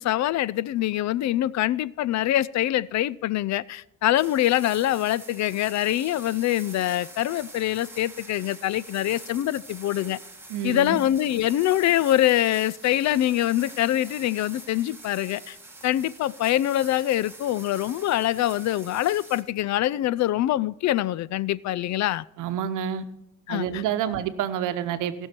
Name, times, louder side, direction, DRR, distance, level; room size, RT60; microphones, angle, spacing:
voice 1, 0.0-10.2 10.6-15.6 15.8-22.2 23.5-23.8, left 13 dB, 65° left, 0.4 m, -24 dB
sound 1, 4.2-19.4, right 2 dB, 10° right, 1.7 m, -45 dB
voice 2, 10.5-11.0 22.4-23.0 23.5-25.1, right 9 dB, 90° right, 0.9 m, -28 dB
18.0 x 6.4 x 4.4 m
cardioid pair, 90°, 30 cm